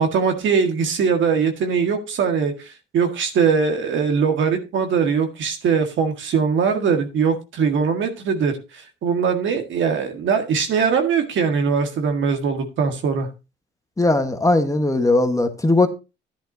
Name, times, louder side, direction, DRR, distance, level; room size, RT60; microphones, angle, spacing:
voice 1, 0.0-13.3, right 6 dB, 75° right, 1.8 m, -21 dB
voice 2, 14.0-15.9, left 2 dB, 15° left, 1.3 m, -18 dB
11.5 x 10.5 x 2.7 m
cardioid pair, 90°, 20 cm